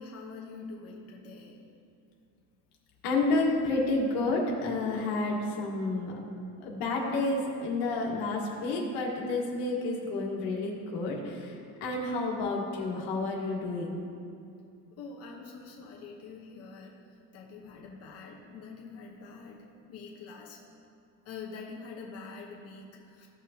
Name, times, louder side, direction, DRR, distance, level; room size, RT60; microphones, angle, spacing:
voice 1, 0.0-1.6 15.0-20.6 21.2-23.3, left 4 dB, 40° left, -2 dB, 1.1 m, -45 dB
voice 2, 3.0-6.2 6.6-14.0, left 2 dB, 90° left, -2 dB, 1.7 m, -30 dB
14.0 x 6.0 x 2.8 m, 2.5 s
cardioid pair, 155°, 36 cm